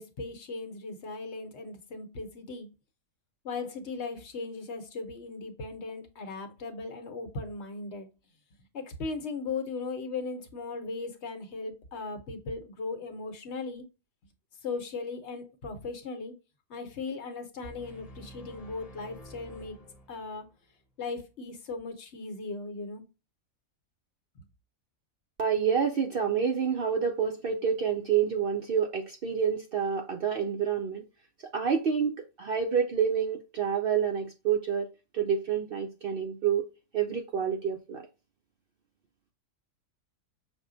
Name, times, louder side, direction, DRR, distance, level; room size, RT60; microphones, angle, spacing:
voice 1, 0.0-2.7 3.4-8.1 8.7-13.8 14.6-16.3 16.7-19.8 20.1-20.4 21.0-23.0 24.4-24.5, left 3 dB, 55° left, 1.0 m, -38 dB
sound 1, 17.6-20.6, right 1 dB, 30° left, 0.9 m, -49 dB
voice 2, 25.4-31.0 31.4-34.9 35.1-36.7 36.9-38.1, right 7 dB, 60° right, 0.6 m, -28 dB
6.1 x 2.2 x 3.7 m
omnidirectional pair, 1.4 m